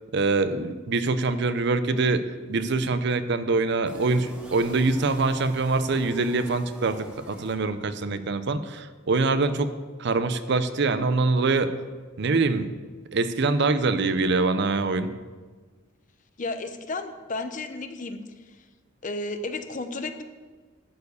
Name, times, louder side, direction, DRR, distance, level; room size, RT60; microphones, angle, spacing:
voice 1, 0.1-9.7 10.0-11.7 12.2-12.7 13.1-15.1, right 3 dB, 55° right, 11 dB, 0.6 m, -24 dB
sound 1, 3.9-8.1, equal, 5° right, 1.2 m, -45 dB
voice 2, 16.4-18.2 19.0-20.2, left 2 dB, 40° left, 9 dB, 0.7 m, -32 dB
11.5 x 4.7 x 8.1 m, 1.4 s
head